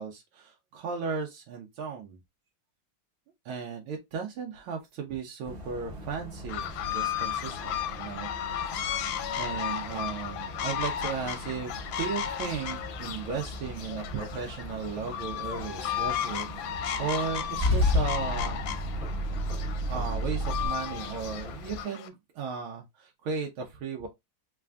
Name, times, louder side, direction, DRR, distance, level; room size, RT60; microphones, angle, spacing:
voice 1, 0.0-2.2 3.4-8.3 8.8-8.9 9.3-18.6 19.9-24.1, right 5 dB, 80° right, 1.5 m, -36 dB
sound 1, 5.4-21.8, equal, 35° right, 1.1 m, -42 dB
sound 2, 6.5-22.1, left 10 dB, 75° left, 1.2 m, -34 dB
Car / Engine starting / Idling, 17.2-20.7, left 1 dB, 5° left, 1.1 m, -29 dB
4.0 x 3.3 x 2.3 m
omnidirectional pair, 2.4 m